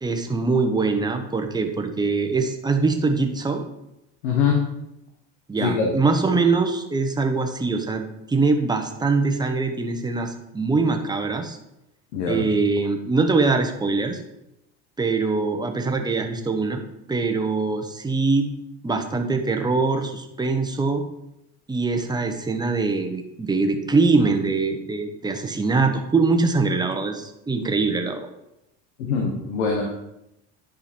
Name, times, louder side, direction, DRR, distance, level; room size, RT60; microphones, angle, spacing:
voice 1, 0.0-3.6 5.5-11.6 12.3-14.2 15.0-16.8 17.1-18.5 18.8-21.0 21.7-28.3, right 3 dB, 10° right, 5 dB, 1.1 m, -23 dB
voice 2, 4.2-4.6 5.6-5.9 12.1-12.5 29.0-29.8, left 5 dB, 85° left, 0 dB, 1.5 m, -23 dB
10.0 x 5.1 x 4.4 m, 0.86 s
supercardioid pair, 105°, 35 cm